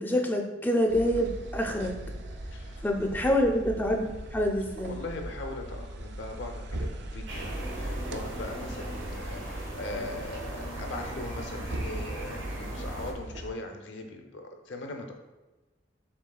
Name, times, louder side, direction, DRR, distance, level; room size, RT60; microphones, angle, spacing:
voice 1, 0.0-1.9 2.8-5.0, equal, 10° left, 2 dB, 0.4 m, -26 dB
sound 1, 0.9-13.5, right 1 dB, 65° right, 0.4 m, -39 dB
voice 2, 2.5-3.4 4.9-15.1, left 2 dB, 80° left, 3 dB, 0.7 m, -40 dB
sound 2, 7.3-13.1, right 1 dB, 85° right, 1.0 m, -39 dB
6.2 x 3.4 x 2.3 m, 1.1 s
head